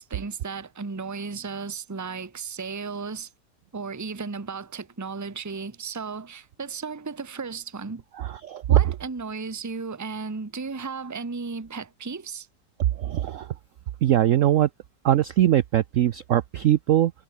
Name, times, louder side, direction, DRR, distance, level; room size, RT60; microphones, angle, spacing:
voice 1, 0.0-3.3 3.7-8.0 8.7-12.5, right 4 dB, 15° right, 0.8 m, -34 dB
voice 2, 8.4-8.8 13.0-13.5 14.0-14.7 15.0-17.1, right 12 dB, 65° right, 0.8 m, -21 dB
omnidirectional pair, 1.9 m